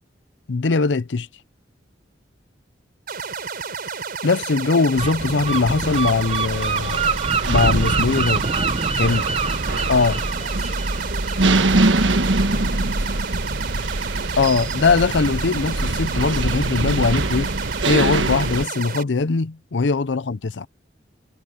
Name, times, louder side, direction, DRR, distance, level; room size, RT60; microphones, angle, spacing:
voice 1, 0.5-1.3 4.2-7.2 7.4-8.4 9.0-9.2 9.9-10.1 14.4-17.5 17.9-20.7, left 4 dB, 70° left, 0.6 m, -21 dB
sound 1, 3.1-19.0, right 5 dB, 55° right, 4.8 m, -31 dB
Gull seagull, 4.9-12.5, right 4 dB, 35° right, 0.9 m, -26 dB
sound 2, 5.8-18.6, right 2 dB, 85° right, 1.4 m, -24 dB
voice 2, 8.9-9.4 9.8-13.3 19.7-19.9, left 3 dB, 40° left, 7.5 m, -47 dB
head